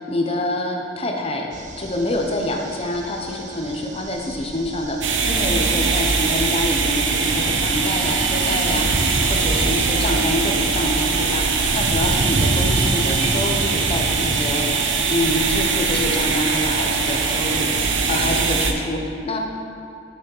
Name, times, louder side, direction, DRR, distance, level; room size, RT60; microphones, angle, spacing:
voice 1, 0.0-1.5 1.8-19.4, left 1 dB, 30° left, 1 dB, 0.8 m, -26 dB
sound 1, 1.5-14.7, right 2 dB, 40° right, 0.5 m, -31 dB
sound 2, 5.0-18.7, right 4 dB, 80° right, 0.7 m, -21 dB
6.5 x 6.3 x 5.4 m, 2.5 s
head